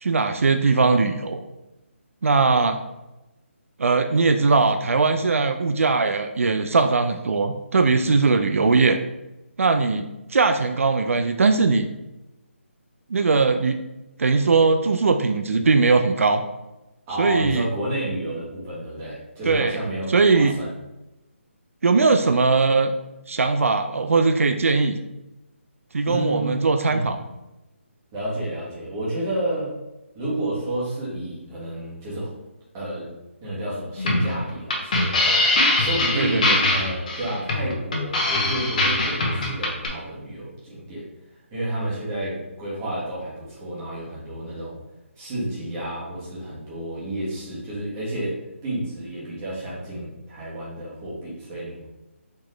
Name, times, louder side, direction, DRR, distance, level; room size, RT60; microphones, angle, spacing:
voice 1, 0.0-1.4 2.2-2.8 3.8-9.0 9.6-11.8 13.1-13.8 14.2-16.4 17.2-17.7 19.4-19.8 20.1-20.5 21.8-22.9 23.3-25.0 25.9-27.2 36.1-36.6, right 4 dB, 85° right, 7 dB, 0.4 m, -20 dB
voice 2, 17.1-20.7 26.1-27.2 28.1-29.8 30.1-32.3 32.7-33.1 33.4-35.4 35.8-41.0 41.5-44.8 45.2-51.8, right 1 dB, 15° right, -8 dB, 1.3 m, -30 dB
sound 1, 34.0-39.9, left 2 dB, 35° left, 0.7 m, -22 dB
4.2 x 3.0 x 3.2 m, 0.98 s
hypercardioid pair, 170°, 7 cm